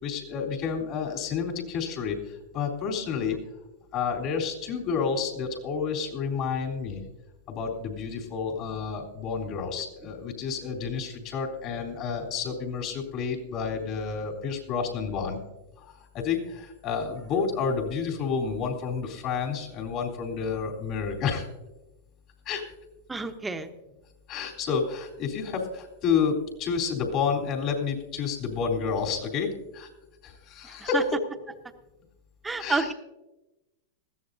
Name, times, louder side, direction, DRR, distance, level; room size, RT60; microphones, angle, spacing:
voice 1, 0.0-3.4 3.9-7.0 7.5-15.4 15.8-21.5 22.5-22.6 24.3-29.9 30.2-31.2 32.6-32.9, left 6 dB, 45° left, -1 dB, 3.5 m, -30 dB
voice 2, 23.1-23.7 30.6-31.0 32.4-32.9, right 3 dB, 10° right, 7 dB, 1.1 m, -29 dB
20.0 x 15.0 x 2.7 m, 1.0 s
hypercardioid pair, 110°, 0 cm